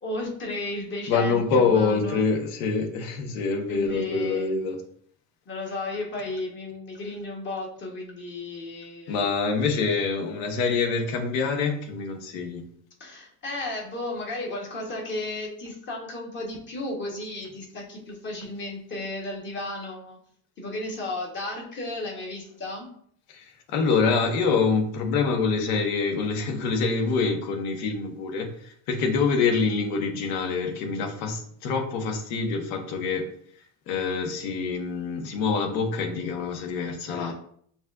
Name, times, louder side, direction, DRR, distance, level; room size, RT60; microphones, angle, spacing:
voice 1, 0.0-2.3 3.7-4.6 5.5-9.3 13.0-20.2 20.6-22.9 37.1-37.3, left 2 dB, 30° left, -1 dB, 1.1 m, -34 dB
voice 2, 1.1-4.8 9.1-12.6 23.3-33.2 33.9-37.3, left 4 dB, 75° left, 4 dB, 1.0 m, -25 dB
7.0 x 2.4 x 2.4 m, 0.63 s
cardioid pair, 160°, 40 cm